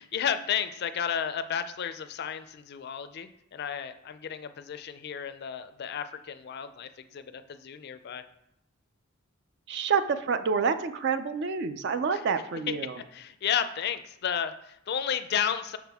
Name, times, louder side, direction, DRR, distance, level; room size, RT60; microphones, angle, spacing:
voice 1, 0.0-8.2 12.1-12.2 13.1-15.8, left 8 dB, 50° left, 11 dB, 0.4 m, -32 dB
voice 2, 9.7-13.0, right 5 dB, 55° right, 11 dB, 0.4 m, -28 dB
6.1 x 5.8 x 3.5 m, 0.80 s
head